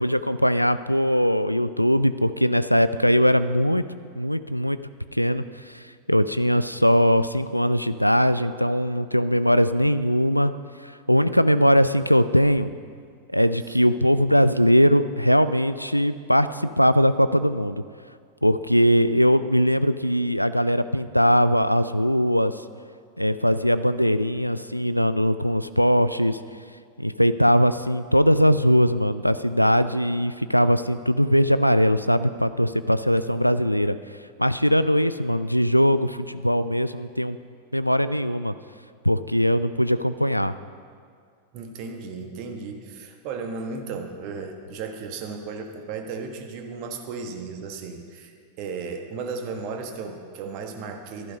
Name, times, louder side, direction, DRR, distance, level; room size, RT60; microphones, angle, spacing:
voice 1, 0.0-3.8 4.2-4.8 5.1-5.8 6.1-10.5 10.8-12.7 13.3-17.8 18.4-22.6 23.2-26.4 27.0-33.9 34.4-37.4 37.7-38.5 39.0-40.5, equal, 90° left, 13 dB, 0.3 m, -20 dB
voice 2, 33.1-33.5 41.5-51.4, right 4 dB, 45° right, 4 dB, 1.4 m, -35 dB
12.0 x 11.0 x 5.3 m, 2.2 s
figure-of-eight pair, 90°, 0 cm